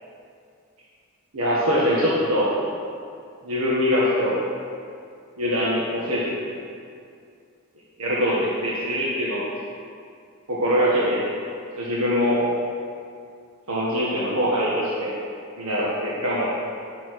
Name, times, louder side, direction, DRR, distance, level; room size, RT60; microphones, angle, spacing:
voice 1, 1.3-2.5 3.4-4.4 5.4-6.3 8.0-8.4 8.6-9.4 10.5-11.2 11.8-12.4 13.7-15.1 15.6-16.6, equal, 75° right, -7 dB, 1.5 m, -23 dB
10.5 x 6.9 x 4.7 m, 2.4 s
head